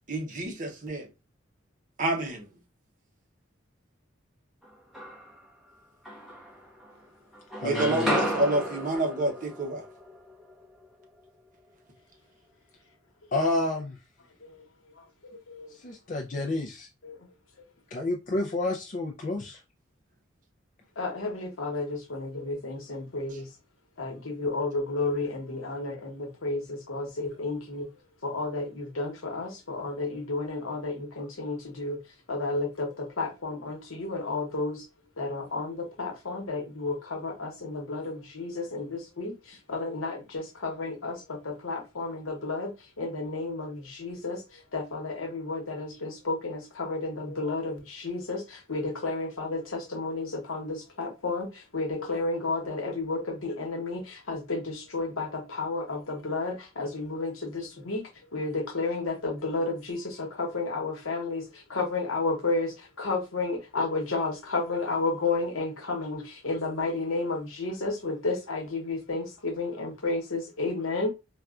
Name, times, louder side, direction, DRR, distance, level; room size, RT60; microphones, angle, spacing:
voice 1, 0.1-1.1 2.0-2.5 7.6-9.8, right 2 dB, 40° right, 0.8 m, -28 dB
sound 1, 4.6-5.5 6.0-7.1 7.3-11.3, equal, ahead, 0.9 m, -34 dB
voice 2, 7.6-8.3 13.3-14.0 15.8-16.9 17.9-19.6, left 2 dB, 40° left, 0.4 m, -29 dB
voice 3, 15.2-15.7 17.0-17.2 21.0-23.5 24.0-27.9 28.2-32.0 32.3-34.9 35.2-42.7 43.0-58.0 58.3-71.1, left 3 dB, 85° left, 1.0 m, -32 dB
4.2 x 2.3 x 2.4 m
head